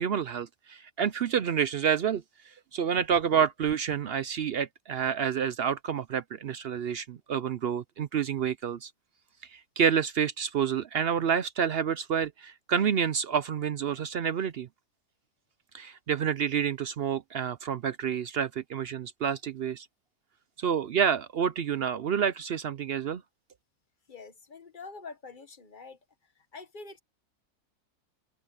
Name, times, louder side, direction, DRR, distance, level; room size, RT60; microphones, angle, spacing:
voice 1, 0.0-8.9 9.5-14.7 15.7-19.9 20.6-23.2, right 7 dB, 65° right, 0.6 m, -28 dB
voice 2, 24.1-26.0 26.5-27.0, left 4 dB, 35° left, 1.4 m, -45 dB
open air
omnidirectional pair, 1.6 m